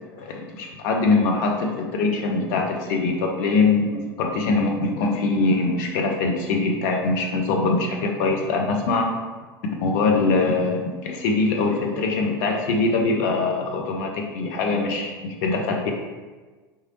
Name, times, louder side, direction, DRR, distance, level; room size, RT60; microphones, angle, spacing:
voice 1, 0.2-9.1 9.8-15.9, left 3 dB, 50° left, 1 dB, 0.5 m, -23 dB
2.9 x 2.4 x 2.9 m, 1.3 s
figure-of-eight pair, 75°, 13 cm